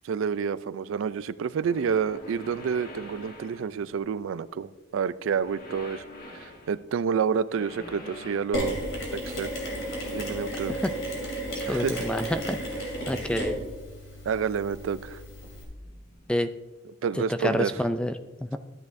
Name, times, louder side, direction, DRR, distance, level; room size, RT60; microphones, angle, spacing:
voice 1, 0.0-6.0 6.3-8.8 9.1-9.5 10.1-10.8 11.7-12.1 14.3-15.2 17.0-17.7, right 6 dB, 80° right, 16 dB, 0.3 m, -29 dB
sound 1, 1.5-4.2 5.2-6.8 7.5-8.6 9.4-10.9 12.3-12.4 14.1-14.2 15.8-16.5, left 1 dB, 50° left, 1.4 m, -46 dB
Mechanisms, 8.5-15.6, equal, 90° left, 2.9 m, -33 dB
voice 2, 11.5-12.6 13.1-13.6 16.3-16.5 17.3-18.6, left 1 dB, 5° left, 10 dB, 0.3 m, -28 dB
13.5 x 9.6 x 2.6 m, 1.2 s
head